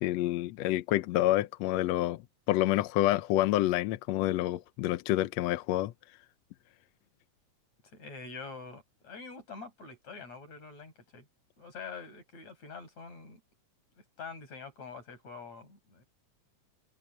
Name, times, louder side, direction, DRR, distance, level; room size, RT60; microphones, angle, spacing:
voice 1, 0.0-2.2 2.5-5.9, left 15 dB, 75° left, 1.7 m, -28 dB
voice 2, 7.9-11.3 11.6-13.4 14.0-16.0, left 4 dB, 60° left, 7.6 m, -45 dB
omnidirectional pair, 3.6 m